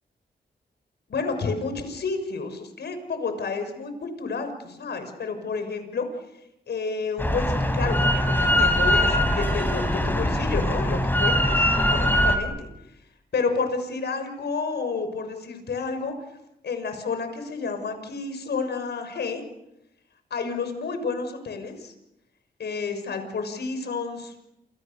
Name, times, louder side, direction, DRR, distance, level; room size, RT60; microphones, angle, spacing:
voice 1, 1.1-6.1 6.7-12.7 13.3-16.1 16.6-19.4 20.3-21.9 22.6-24.3, left 4 dB, 75° left, 8 dB, 6.3 m, -30 dB
Drill, 7.2-12.4, equal, 10° left, 5.1 m, -22 dB
29.0 x 29.0 x 6.9 m, 0.85 s
cardioid pair, 80°, 18 cm